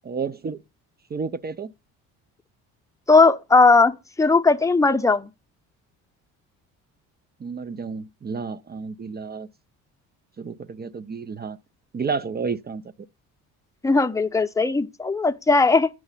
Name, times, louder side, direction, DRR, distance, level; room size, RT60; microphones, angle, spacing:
voice 1, 0.0-0.6 1.1-1.7 7.4-9.5 10.4-11.6 11.9-12.8, right 5 dB, 25° right, 0.5 m, -31 dB
voice 2, 3.1-5.3 13.8-15.9, left 3 dB, 10° left, 0.7 m, -18 dB
8.7 x 6.1 x 5.5 m
supercardioid pair, 65°, 40 cm